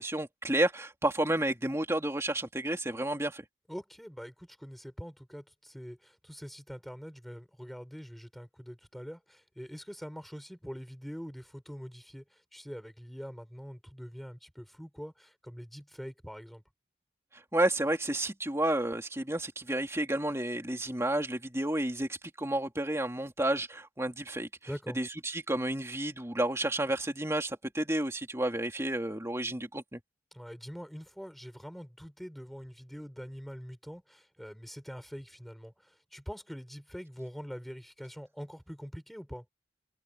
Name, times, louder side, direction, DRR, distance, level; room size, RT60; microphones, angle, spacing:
voice 1, 0.0-3.4 17.5-24.5 25.0-30.0, right 1 dB, 15° right, 2.8 m, -31 dB
voice 2, 3.7-16.6 24.7-25.0 30.3-39.4, equal, ahead, 5.8 m, -44 dB
head